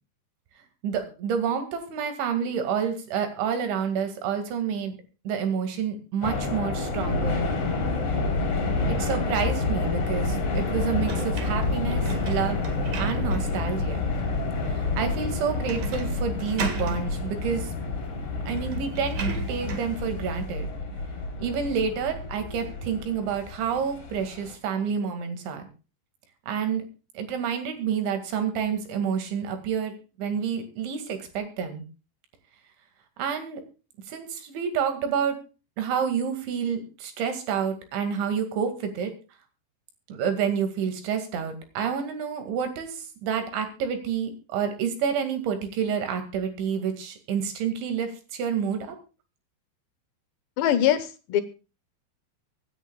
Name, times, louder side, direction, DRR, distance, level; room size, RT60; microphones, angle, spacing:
voice 1, 0.8-5.0 5.3-7.4 8.9-12.6 13.0-14.1 14.7-17.7 18.5-20.7 21.4-25.6 26.5-26.8 27.2-31.8 33.2-33.6 34.1-35.4 35.8-39.1 40.1-49.0, right 7 dB, 80° right, 7 dB, 4.5 m, -29 dB
sound 1, 6.2-24.5, left 3 dB, 40° left, 4.6 m, -29 dB
sound 2, 11.1-13.6 14.1-14.2 15.6-16.1 16.4-17.0 18.0-18.1 18.5-20.0, right 4 dB, 50° right, 2.4 m, -34 dB
voice 2, 50.6-51.4, left 11 dB, 75° left, 10 dB, 3.3 m, -22 dB
25.0 x 10.0 x 2.3 m, 0.33 s
omnidirectional pair, 5.3 m